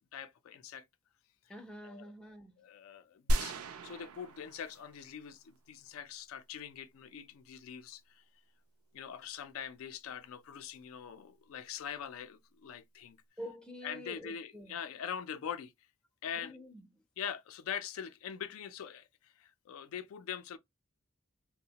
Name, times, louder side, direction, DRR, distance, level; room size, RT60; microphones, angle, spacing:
voice 1, 0.1-0.8 1.8-2.1 2.6-3.6 3.8-8.2 8.9-13.2 13.8-15.7 16.2-16.6 17.2-20.6, left 8 dB, 75° left, 0.3 m, -43 dB
voice 2, 1.5-2.5 13.4-14.8 16.4-16.8, equal, 5° left, 0.4 m, -47 dB
sound 1, 3.3-5.2 5.6-5.7, equal, 85° right, 0.4 m, -34 dB
2.8 x 2.0 x 2.7 m
head